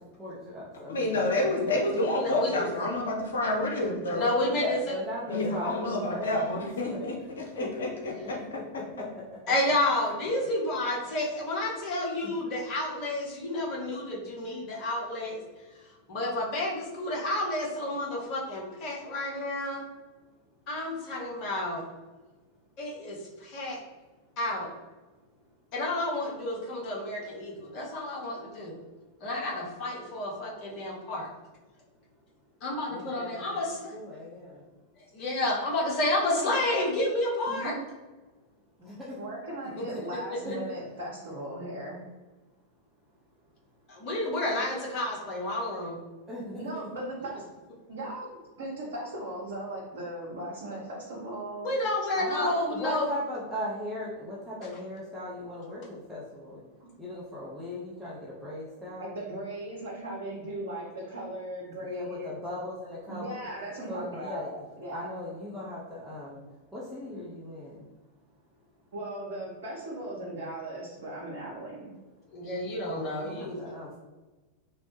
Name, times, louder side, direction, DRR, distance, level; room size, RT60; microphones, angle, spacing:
voice 1, 0.2-1.8 2.2-2.7 4.0-7.1 7.5-7.7 8.2-9.4 12.2-12.3 32.9-33.6 33.9-34.6 36.3-36.5 38.8-39.2 40.4-40.6 46.3-46.6 52.2-56.6 57.0-59.1 61.8-63.4 63.9-64.5 64.9-66.4 66.7-67.8 72.9-74.0, left 1 dB, 5° right, -8 dB, 0.7 m, -38 dB
voice 2, 0.9-4.3 5.3-8.8, left 1 dB, 65° left, 0 dB, 0.6 m, -29 dB
voice 3, 2.2-2.7 4.1-4.8 9.5-15.4 15.7-19.8 20.7-21.8 22.8-23.8 24.4-24.7 25.7-28.8 29.2-31.3 32.6-33.9 35.0-37.8 39.8-39.9 40.5-40.6 43.9-46.0 51.6-53.1 72.3-73.6, left 1 dB, 40° left, -3 dB, 0.9 m, -30 dB
voice 4, 37.5-37.8 39.2-42.0 46.6-47.4 47.9-51.7 59.0-62.3 63.1-65.1 68.9-71.9, right 1 dB, 60° right, -5 dB, 0.7 m, -38 dB
3.1 x 2.0 x 3.1 m, 1.2 s
figure-of-eight pair, 90°, 0 cm